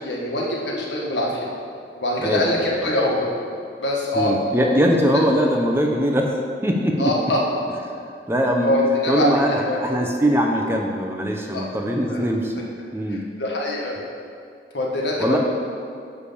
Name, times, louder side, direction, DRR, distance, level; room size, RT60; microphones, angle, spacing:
voice 1, 0.0-1.5 1.9-3.3 3.8-4.3 4.6-4.8 7.0-7.4 8.6-9.8 11.5-11.7 12.1-12.2 13.1-13.9 14.7-15.4, left 1 dB, 90° left, -3 dB, 1.5 m, -23 dB
voice 2, 2.2-2.6 4.2-6.4 6.6-7.0 8.3-8.8 9.1-12.5 12.9-13.2 15.2-15.4, equal, 15° right, 1 dB, 0.6 m, -21 dB
9.7 x 3.4 x 6.9 m, 2.3 s
head